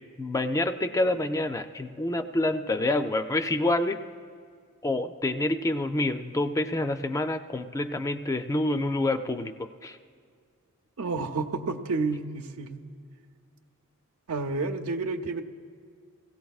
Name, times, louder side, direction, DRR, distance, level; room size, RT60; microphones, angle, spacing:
voice 1, 0.2-4.0 4.8-10.0, left 2 dB, 15° left, 8 dB, 0.3 m, -27 dB
voice 2, 11.0-12.8 14.3-15.4, right 3 dB, 75° right, 4 dB, 0.7 m, -30 dB
21.5 x 16.5 x 2.4 m, 2.1 s
head